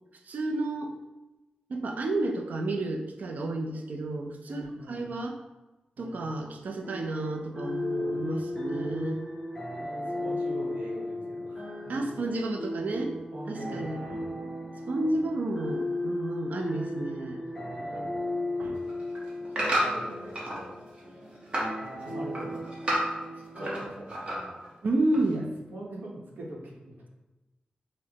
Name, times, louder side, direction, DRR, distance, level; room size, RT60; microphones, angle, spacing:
voice 1, 0.2-0.9 1.7-5.4 6.0-9.2 11.9-13.1 13.5-14.3 14.9-17.4 18.6-18.8 24.8-25.5, right 2 dB, 60° right, 4 dB, 0.4 m, -31 dB
voice 2, 4.5-5.2 6.0-6.3 7.9-8.4 8.8-9.1 10.2-12.0 13.3-14.5 15.0-15.2 17.5-18.1 19.6-20.7 22.0-22.6 23.3-24.6 25.1-25.4 25.7-27.1, right 1 dB, 85° right, -3 dB, 0.9 m, -43 dB
sound 1, 6.8-23.9, left 1 dB, 10° left, 0.6 m, -36 dB
sound 2, 18.8-20.6 21.0-21.8 22.1-23.8 24.1-24.7 25.1-25.2, right 1 dB, 35° right, 0.9 m, -30 dB
4.8 x 2.1 x 2.8 m, 1.1 s
wide cardioid pair, 160°, 3 cm